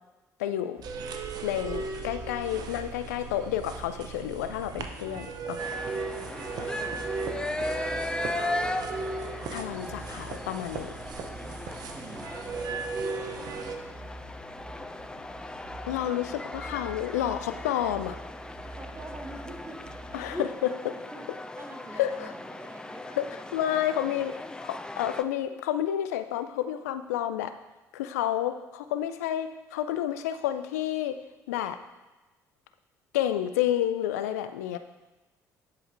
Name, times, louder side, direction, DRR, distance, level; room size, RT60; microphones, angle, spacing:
voice 1, 0.4-0.8 1.4-5.6 9.5-10.9 15.8-18.2 20.1-20.5 22.0-22.3 23.2-23.3 23.5-24.3 24.6-27.5 27.9-31.2 31.5-31.8 33.1-34.8, left 11 dB, 75° left, 10 dB, 0.3 m, -30 dB
sound 1, 0.8-13.8, right 5 dB, 50° right, 0.6 m, -37 dB
sound 2, 0.8-20.4, right 1 dB, 80° right, 0.9 m, -47 dB
sound 3, 5.6-25.2, left 2 dB, 10° left, 0.4 m, -38 dB
voice 2, 6.6-7.0 7.6-8.5 11.9-12.9 18.7-20.8 21.1-21.3 21.6-24.2, right 2 dB, 30° right, 4 dB, 1.1 m, -47 dB
11.0 x 4.9 x 2.6 m, 1.1 s
hypercardioid pair, 55°, 8 cm